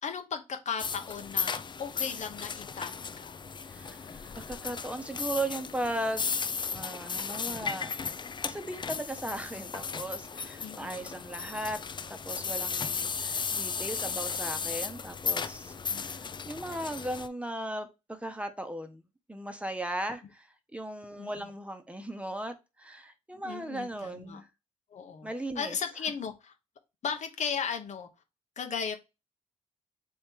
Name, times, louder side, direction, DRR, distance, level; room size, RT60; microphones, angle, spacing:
voice 1, 0.0-3.4 10.6-11.1 15.9-16.3 21.2-21.5 23.4-24.4 24.9-25.3 25.5-26.5 27.0-28.1 28.6-29.0, left 6 dB, 65° left, 1.0 m, -36 dB
sound 1, 0.8-17.3, left 5 dB, 35° left, 0.5 m, -35 dB
voice 2, 3.7-6.3 6.7-7.9 8.4-11.8 12.1-19.0 19.3-24.5 25.2-25.8, right 1 dB, 10° right, 0.9 m, -37 dB
3.6 x 3.2 x 4.5 m
cardioid pair, 65°, 13 cm